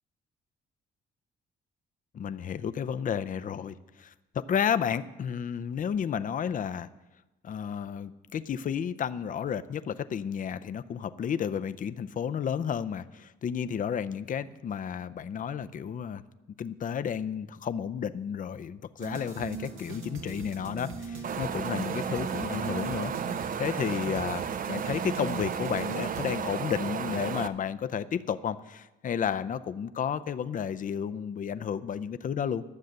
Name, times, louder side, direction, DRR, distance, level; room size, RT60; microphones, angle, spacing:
voice 1, 2.1-4.1 4.4-6.9 7.4-16.2 16.6-23.1 23.6-32.6, left 8 dB, 40° left, 12 dB, 0.5 m, -32 dB
sound 1, 19.0-26.3, right 5 dB, 85° right, 1.5 m, -40 dB
Wind, 21.2-27.5, right 7 dB, 45° right, 0.5 m, -33 dB
11.5 x 7.4 x 6.6 m, 1.1 s
cardioid pair, 90°, 20 cm